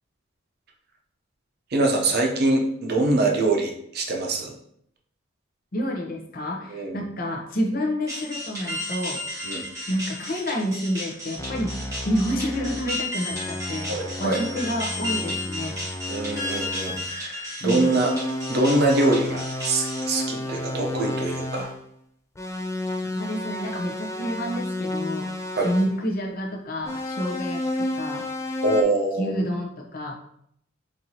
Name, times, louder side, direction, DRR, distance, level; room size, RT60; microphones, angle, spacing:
voice 1, 1.7-4.5 6.7-7.0 9.4-9.6 13.9-14.4 16.1-18.1 18.5-21.7 25.5-25.7 28.6-29.3, right 2 dB, 50° right, 1 dB, 0.6 m, -24 dB
voice 2, 5.7-9.2 9.9-11.8 12.0-15.8 17.6-18.0 20.1-20.2 21.6-21.7 23.1-25.3 25.6-27.7 28.0-28.2 29.2-30.1, equal, 45° left, 1 dB, 0.7 m, -29 dB
sound 1, 8.1-20.0, left 1 dB, 15° right, 1.1 m, -33 dB
sound 2, 11.4-12.9 13.3-17.1 17.8-21.8 22.4-26.0 26.8-28.8, left 1 dB, 15° left, 0.3 m, -32 dB
4.4 x 2.6 x 2.8 m, 0.70 s
head